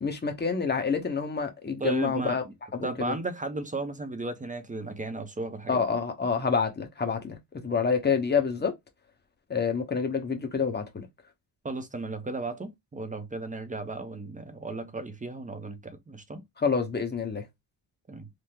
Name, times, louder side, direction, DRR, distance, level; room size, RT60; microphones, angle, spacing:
voice 1, 0.0-2.4 2.7-3.2 5.7-8.7 9.5-11.1 16.6-17.4, left 5 dB, 25° left, 1.0 m, -28 dB
voice 2, 1.8-2.5 2.8-5.8 11.6-16.4 18.1-18.3, right 2 dB, 20° right, 0.6 m, -35 dB
3.4 x 2.0 x 2.9 m
cardioid pair, 95°, 44 cm